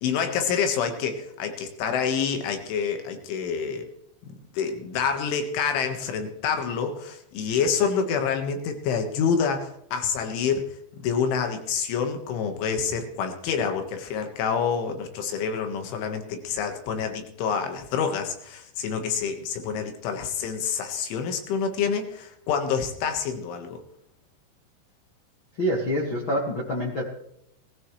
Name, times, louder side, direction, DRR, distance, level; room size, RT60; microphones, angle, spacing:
voice 1, 0.0-3.9 4.2-10.7 11.0-23.8, left 6 dB, 85° left, 6 dB, 3.9 m, -27 dB
voice 2, 25.6-27.0, equal, 60° left, -2 dB, 1.3 m, -26 dB
19.5 x 15.0 x 3.2 m, 0.75 s
omnidirectional pair, 5.4 m